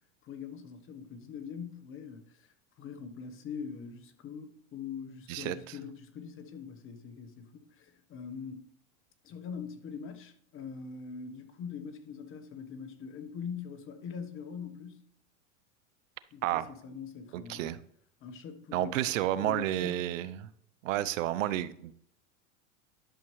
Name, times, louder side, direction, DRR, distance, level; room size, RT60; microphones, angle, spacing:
voice 1, 0.2-8.7 9.2-15.0 16.3-17.7 18.2-19.0 19.4-20.2, left 6 dB, 30° left, 1.1 m, -43 dB
voice 2, 17.3-17.8 18.7-20.5 20.8-21.9, right 14 dB, 70° right, 0.7 m, -31 dB
11.5 x 6.8 x 3.2 m
supercardioid pair, 130°, 39 cm